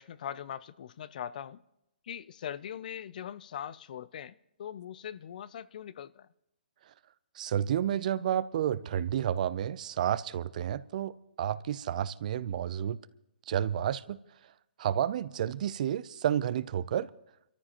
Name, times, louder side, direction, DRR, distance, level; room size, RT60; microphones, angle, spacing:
voice 1, 0.0-1.6 2.0-6.3, left 9 dB, 55° left, 0.4 m, -41 dB
voice 2, 7.4-11.1 11.4-13.0 13.5-14.2 14.8-17.1, right 10 dB, 50° right, 0.5 m, -30 dB
28.0 x 13.5 x 3.0 m
hypercardioid pair, 150°, 5 cm